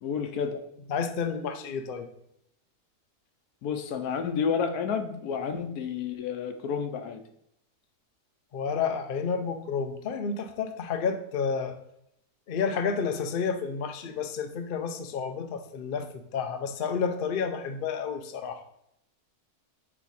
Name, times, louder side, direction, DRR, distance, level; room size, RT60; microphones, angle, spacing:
voice 1, 0.0-0.5 3.6-7.2, left 6 dB, 80° left, 8 dB, 1.2 m, -30 dB
voice 2, 0.9-2.1 8.5-11.7 12.5-18.6, left 6 dB, 60° left, 6 dB, 0.5 m, -30 dB
7.7 x 3.3 x 4.1 m, 0.77 s
omnidirectional pair, 1.6 m